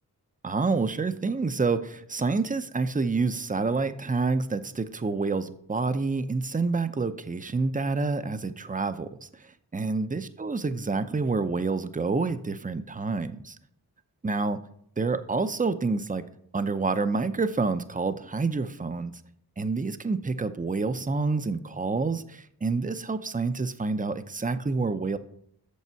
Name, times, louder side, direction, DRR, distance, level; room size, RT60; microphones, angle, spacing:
voice 1, 0.4-9.2 9.7-13.6 14.2-14.6 15.0-16.3 16.5-19.2 19.6-25.2, right 4 dB, 20° right, 11 dB, 0.6 m, -28 dB
8.4 x 6.6 x 4.6 m, 0.69 s
cardioid pair, 45°, 39 cm